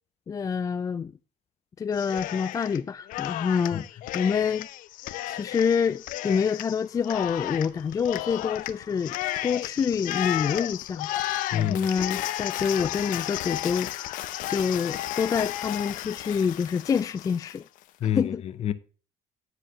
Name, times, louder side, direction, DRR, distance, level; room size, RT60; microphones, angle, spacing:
voice 1, 0.3-1.1 1.8-4.7 5.3-9.1 9.4-11.1 11.5-17.6 18.1-18.4, left 6 dB, 25° left, 0.3 m, -27 dB
Cheering, 1.9-2.8 3.1-17.6, left 15 dB, 75° left, 0.7 m, -33 dB
voice 2, 11.5-11.9 18.0-18.7, left 10 dB, 50° left, 0.9 m, -27 dB
9.8 x 4.9 x 6.6 m
cardioid pair, 115°, 14 cm